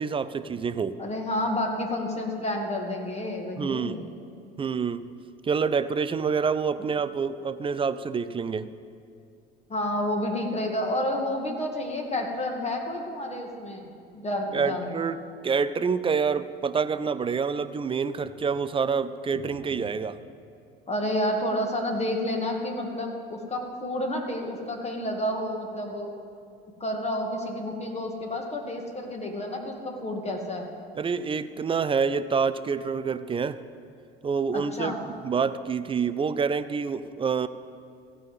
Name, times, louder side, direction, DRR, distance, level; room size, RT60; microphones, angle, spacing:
voice 1, 0.0-1.0 3.6-4.0 4.6-5.1 5.4-8.7 14.5-15.2 15.4-20.2 31.0-33.6 34.2-37.5, right 5 dB, 20° right, 14 dB, 0.4 m, -27 dB
voice 2, 1.0-4.0 9.7-15.0 20.9-26.1 26.8-30.7 34.5-35.0, left 1 dB, 20° left, 2 dB, 2.2 m, -30 dB
15.5 x 5.5 x 7.7 m, 2.5 s
figure-of-eight pair, 65°, 30 cm